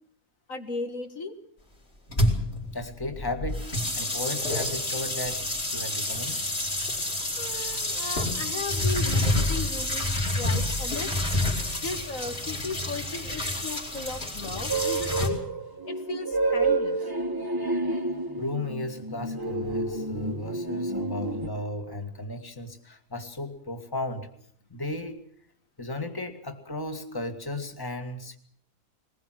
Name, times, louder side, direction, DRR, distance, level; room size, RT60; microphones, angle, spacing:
voice 1, 0.5-1.3 7.4-11.1 11.8-15.4 15.9-17.0, left 3 dB, 60° left, 5 dB, 2.1 m, -36 dB
sound 1, 2.1-15.3, left 1 dB, 40° left, 4.2 m, -28 dB
voice 2, 2.7-3.6 3.9-5.4 5.7-6.4 18.4-24.3 24.7-25.2 25.8-28.4, left 2 dB, 15° left, 6 dB, 1.9 m, -35 dB
sound 2, 14.7-21.5, right 3 dB, 15° right, 1.4 m, -29 dB
21.5 x 20.5 x 7.7 m, 0.62 s
omnidirectional pair, 1.6 m